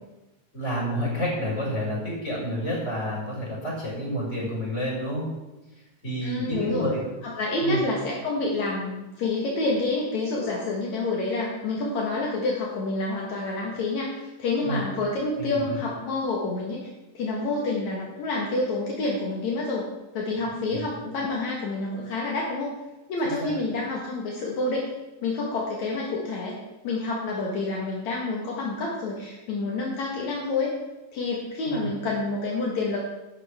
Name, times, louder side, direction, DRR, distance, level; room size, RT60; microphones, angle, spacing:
voice 1, 0.5-5.3 6.0-7.0 7.6-7.8 14.6-14.8 15.4-15.8 20.7-20.8 23.2-23.5 31.6-31.9, equal, 15° left, -6 dB, 5.6 m, -29 dB
voice 2, 6.2-6.9 7.2-16.9 17.1-19.9 20.1-22.7 23.1-24.9 25.2-26.6 26.8-30.7 31.1-33.0, left 2 dB, 60° left, -3 dB, 1.9 m, -28 dB
15.0 x 12.0 x 3.6 m, 1.0 s
omnidirectional pair, 5.4 m